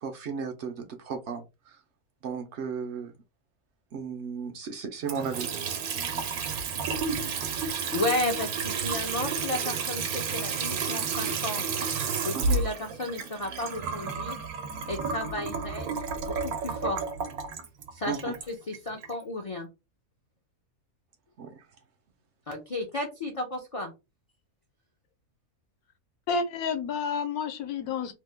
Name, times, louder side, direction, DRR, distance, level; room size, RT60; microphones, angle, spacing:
voice 1, 0.0-1.8 2.2-3.1 3.9-5.5 6.0-6.3 7.3-7.5 12.3-12.6 18.1-18.4 21.4-21.6, right 6 dB, 65° right, 0.7 m, -35 dB
Water tap faucet / Sink (filling or washing) / Trickle dribble, 5.0-19.1, right 5 dB, 85° right, 1.2 m, -31 dB
voice 2, 7.9-11.7 12.2-14.4 14.9-17.0 17.9-19.7 22.5-23.9, left 2 dB, 60° left, 0.3 m, -33 dB
voice 3, 26.3-28.1, left 5 dB, 85° left, 1.1 m, -30 dB
2.9 x 2.1 x 3.2 m
omnidirectional pair, 1.5 m